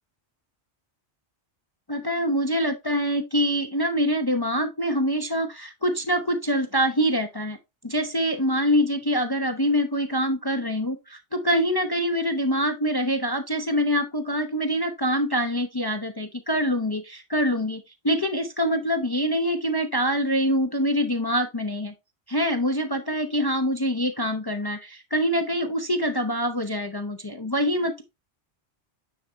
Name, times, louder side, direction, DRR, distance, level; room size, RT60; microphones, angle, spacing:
voice 1, 1.9-7.6 7.8-21.9 22.3-28.0, equal, 25° left, 0.7 m, -25 dB
9.2 x 4.2 x 3.4 m
omnidirectional pair, 1.2 m